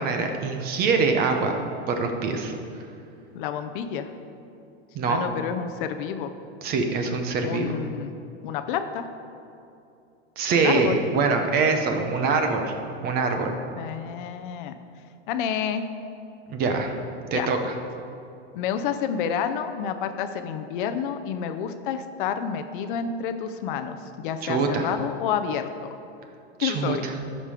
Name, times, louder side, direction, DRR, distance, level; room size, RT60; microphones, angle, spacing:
voice 1, 0.0-1.6 1.9-2.5 4.9-5.2 6.6-7.7 10.4-12.7 13.0-13.5 16.5-16.9 17.3-17.7 24.4-24.9 26.6-27.1, right 4 dB, 25° right, 5 dB, 0.8 m, -24 dB
voice 2, 3.3-4.1 5.0-6.3 7.4-8.1 8.4-9.1 10.6-11.0 13.8-14.7 15.3-15.8 17.3-17.5 18.5-25.9 26.6-27.1, left 8 dB, 50° left, 8 dB, 0.6 m, -29 dB
13.0 x 5.3 x 4.9 m, 2.6 s
supercardioid pair, 155°, 34 cm